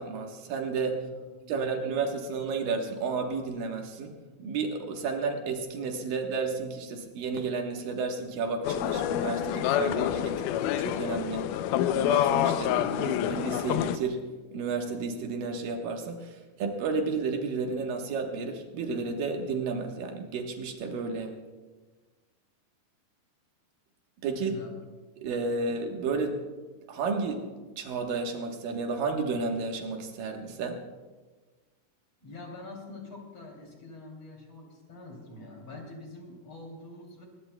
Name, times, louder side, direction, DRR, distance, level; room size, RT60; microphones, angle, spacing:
voice 1, 0.0-1.1 1.5-4.1 4.4-10.4 10.8-11.5 11.9-21.4 24.2-24.6 25.2-26.4 26.9-27.5 27.8-30.8, right 4 dB, 80° right, 3 dB, 3.0 m, -32 dB
voice 2, 1.1-1.9 24.4-24.7 32.2-37.2, left 2 dB, 45° left, 0 dB, 3.8 m, -45 dB
sound 1, 8.6-14.0, left 11 dB, 80° left, 2.0 m, -27 dB
22.5 x 20.0 x 2.2 m, 1.3 s
omnidirectional pair, 3.9 m